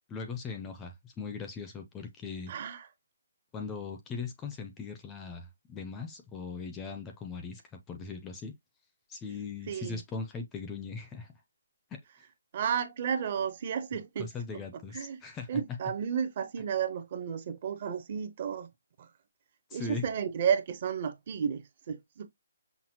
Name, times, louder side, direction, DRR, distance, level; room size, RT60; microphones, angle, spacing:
voice 1, 0.1-2.5 3.5-8.5 9.1-11.3 14.2-15.5 19.7-20.0, left 4 dB, 10° left, 0.4 m, -39 dB
voice 2, 2.5-2.9 9.7-10.0 12.5-14.3 14.9-15.2 15.5-18.7 19.0-19.1 19.7-22.3, right 7 dB, 30° right, 0.6 m, -32 dB
5.8 x 2.1 x 2.8 m
hypercardioid pair, 175°, 0 cm